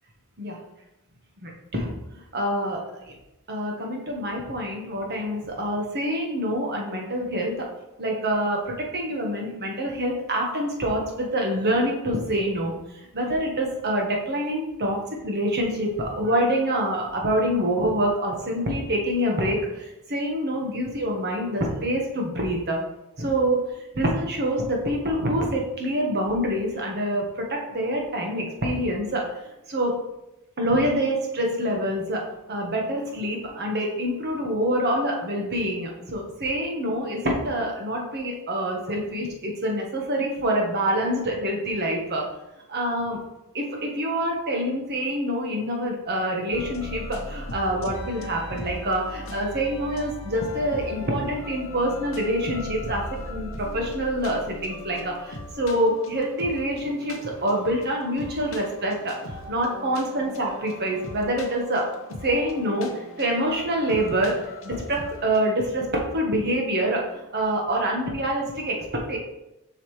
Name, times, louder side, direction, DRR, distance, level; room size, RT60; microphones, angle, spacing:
voice 1, 2.3-3.1 3.5-7.7 8.0-15.0 15.2-22.8 23.2-29.2 29.7-30.0 30.6-42.2 42.7-43.2 43.5-61.9 62.2-69.2, right 1 dB, 45° right, 0 dB, 1.4 m, -26 dB
sound 1, 46.5-65.4, left 1 dB, 60° left, 0.9 m, -39 dB
7.2 x 5.8 x 3.2 m, 0.93 s
head